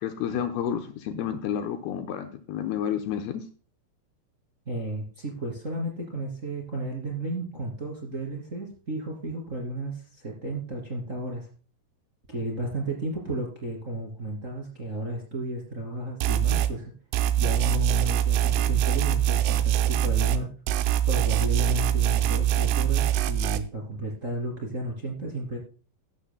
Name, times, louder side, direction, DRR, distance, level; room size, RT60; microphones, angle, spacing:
voice 1, 0.0-3.4, left 9 dB, 80° left, 6 dB, 2.7 m, -30 dB
voice 2, 4.7-11.5 12.3-16.9 17.4-20.5 21.0-25.6, right 1 dB, 25° right, -2 dB, 2.1 m, -33 dB
sound 1, 16.2-16.7 17.1-20.4 20.7-23.6, right 11 dB, 80° right, 2.6 m, -23 dB
15.0 x 12.0 x 2.2 m, 0.40 s
omnidirectional pair, 5.0 m